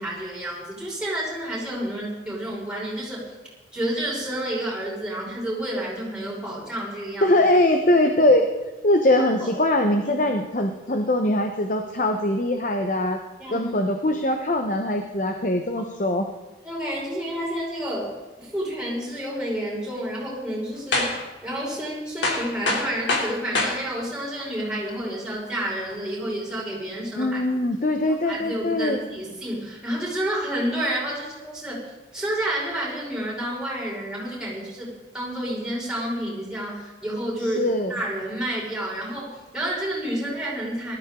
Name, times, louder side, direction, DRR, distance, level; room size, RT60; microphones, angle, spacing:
voice 1, 0.0-3.2 3.7-7.3 9.4-9.5 10.0-10.3 13.4-13.7 16.6-21.1 21.4-27.6 28.3-31.8 32.1-34.9 35.1-37.6 37.9-41.0, right 1 dB, 5° right, -6 dB, 5.2 m, -30 dB
voice 2, 7.2-8.5 8.8-13.2 13.5-16.3 27.2-29.0 37.4-37.9, left 1 dB, 45° left, 5 dB, 0.9 m, -22 dB
sound 1, 20.9-21.3 21.7-21.8 22.2-23.8 24.4-24.5 25.8-26.0, left 2 dB, 85° left, 3.1 m, -24 dB
19.0 x 13.5 x 3.8 m, 1.2 s
head